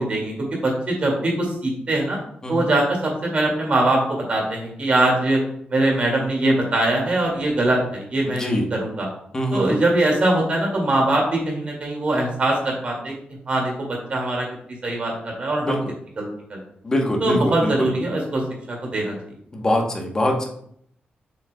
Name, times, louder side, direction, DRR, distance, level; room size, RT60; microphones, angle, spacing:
voice 1, 0.0-2.2 2.5-4.0 4.3-5.4 5.7-9.1 9.5-13.1 13.5-13.7 14.1-14.5 14.8-15.8 16.2-16.6 17.2-18.4 18.7-19.2, right 2 dB, 40° right, -1 dB, 2.1 m, -22 dB
voice 2, 8.3-8.7 9.3-9.8 15.6-15.8 16.8-17.7 19.5-20.5, left 1 dB, 20° left, 1 dB, 0.9 m, -23 dB
7.1 x 6.5 x 2.2 m, 0.68 s
wide cardioid pair, 170°, 3 cm